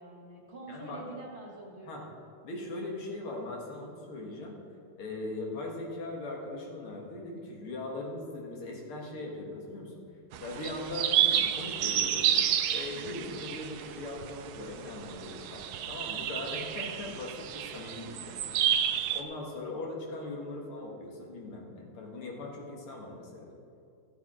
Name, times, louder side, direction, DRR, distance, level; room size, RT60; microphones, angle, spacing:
voice 1, 0.0-2.1 12.9-13.3, right 2 dB, 30° right, -2 dB, 1.9 m, -46 dB
voice 2, 0.7-1.0 1.8-2.0 2.4-4.6 5.0-10.0 10.4-12.3 12.7-18.5 19.1-23.5, left 2 dB, 85° left, -1 dB, 2.6 m, -40 dB
sound 1, 10.3-19.2, right 10 dB, 80° right, 1.5 m, -30 dB
15.0 x 8.1 x 4.9 m, 2.5 s
omnidirectional pair, 2.3 m